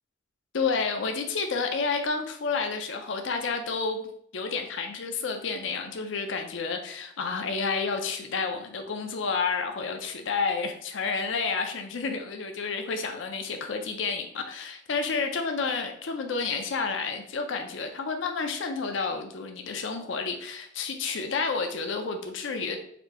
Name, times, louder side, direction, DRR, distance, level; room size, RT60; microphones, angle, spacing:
voice 1, 0.5-22.8, left 4 dB, 90° left, 5 dB, 0.5 m, -30 dB
4.2 x 2.7 x 4.2 m, 0.69 s
head